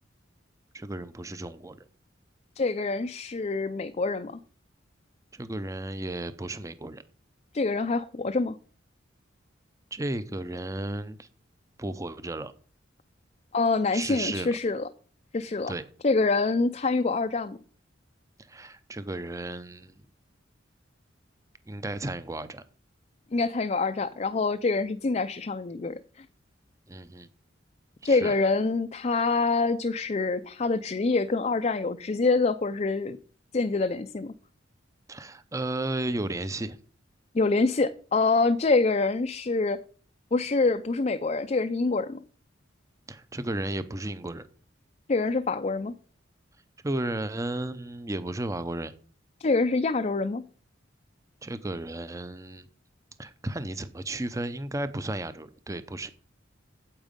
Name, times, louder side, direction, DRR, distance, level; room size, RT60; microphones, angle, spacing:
voice 1, 0.7-1.8 5.3-7.0 9.9-11.3 11.8-12.5 13.9-14.5 15.7-15.8 18.4-20.0 21.7-22.6 26.9-27.3 28.0-28.3 35.1-36.8 43.1-44.5 46.8-48.9 51.4-52.7 53.2-56.1, right 2 dB, 15° right, 0.6 m, -34 dB
voice 2, 2.6-4.4 7.5-8.6 13.5-14.8 15.3-15.7 16.0-17.6 23.3-26.3 28.0-33.2 33.5-34.4 37.3-39.8 40.3-42.2 45.1-45.9 49.4-50.4, left 3 dB, 35° left, 0.4 m, -26 dB
8.9 x 8.2 x 5.2 m
head